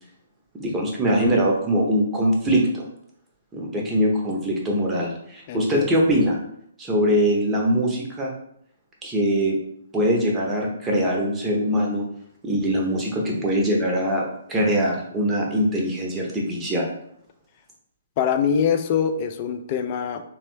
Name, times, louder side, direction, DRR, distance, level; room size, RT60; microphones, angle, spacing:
voice 1, 0.6-2.8 3.5-6.4 6.8-8.3 9.0-9.6 9.9-12.1 12.4-16.9, equal, 15° right, -2 dB, 0.7 m, -22 dB
voice 2, 5.5-5.9 18.2-20.2, left 7 dB, 35° left, 7 dB, 0.3 m, -24 dB
3.3 x 2.1 x 3.0 m, 0.71 s
figure-of-eight pair, 130°, 0 cm